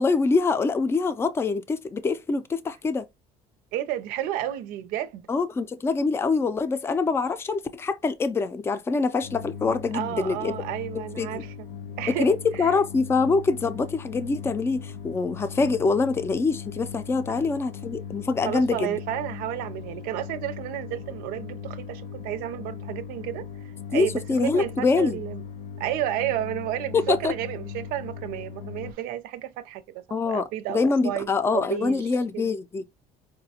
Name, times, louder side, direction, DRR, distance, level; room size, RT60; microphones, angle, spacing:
voice 1, 0.0-3.1 5.3-10.5 10.9-11.4 12.2-19.0 23.9-25.2 26.9-27.3 30.1-32.9, left 4 dB, 15° left, 0.4 m, -25 dB
voice 2, 3.7-5.3 9.9-11.5 12.0-12.7 18.4-23.5 23.9-25.4 25.8-32.5, right 12 dB, 90° right, 0.6 m, -32 dB
sound 1, 9.2-28.9, left 6 dB, 60° left, 0.6 m, -39 dB
4.7 x 2.2 x 2.8 m
cardioid pair, 130°, 15 cm